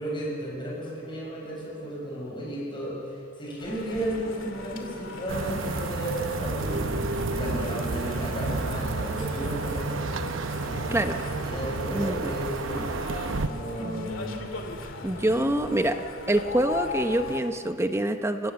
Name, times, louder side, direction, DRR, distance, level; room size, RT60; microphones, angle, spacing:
voice 1, 0.0-10.0 10.6-12.9 13.4-14.5 15.3-15.4, right 1 dB, 25° left, -3 dB, 7.6 m, -34 dB
sound 1, 3.6-17.4, left 3 dB, 75° left, 2.3 m, -39 dB
sound 2, 5.3-13.5, right 3 dB, 80° right, 0.8 m, -31 dB
sound 3, 6.6-14.2, right 1 dB, 40° right, 2.1 m, -38 dB
voice 2, 11.9-12.3 13.8-14.1 15.0-16.0 16.3-18.5, right 1 dB, 15° right, 7 dB, 0.9 m, -26 dB
28.0 x 17.0 x 7.1 m, 2.5 s
head